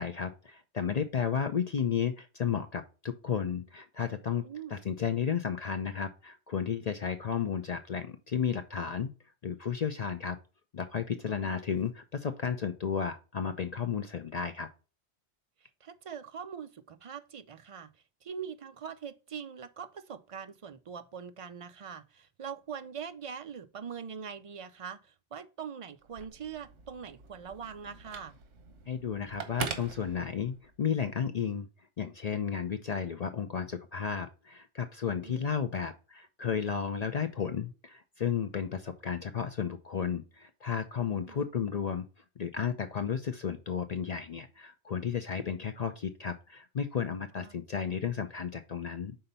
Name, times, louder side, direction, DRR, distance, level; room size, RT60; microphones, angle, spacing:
voice 1, 0.0-4.4 4.7-9.1 9.4-10.4 10.7-14.7 28.9-31.7 32.0-42.1 42.4-49.2, left 7 dB, 50° left, 0.5 m, -33 dB
voice 2, 4.4-4.8 11.3-11.6 15.6-17.9 18.2-28.3 35.2-35.6 41.1-41.4 47.4-47.6, right 7 dB, 50° right, 0.4 m, -43 dB
Telephone, 26.0-30.8, right 5 dB, 90° right, 1.3 m, -43 dB
5.6 x 3.9 x 5.4 m
omnidirectional pair, 1.2 m